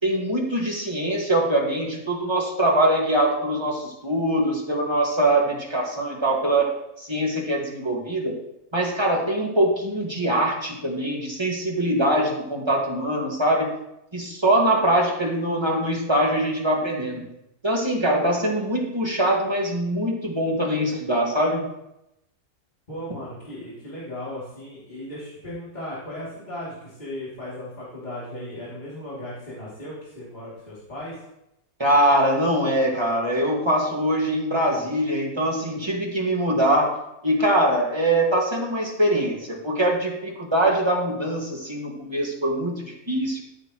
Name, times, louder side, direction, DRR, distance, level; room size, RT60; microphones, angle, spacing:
voice 1, 0.0-6.7 7.0-8.4 8.7-13.7 14.1-17.2 17.6-21.7 31.8-36.9 37.2-43.4, right 1 dB, 20° right, -2 dB, 1.9 m, -23 dB
voice 2, 22.9-31.2, left 1 dB, 30° left, -9 dB, 2.9 m, -36 dB
13.5 x 7.0 x 3.1 m, 0.86 s
omnidirectional pair, 1.6 m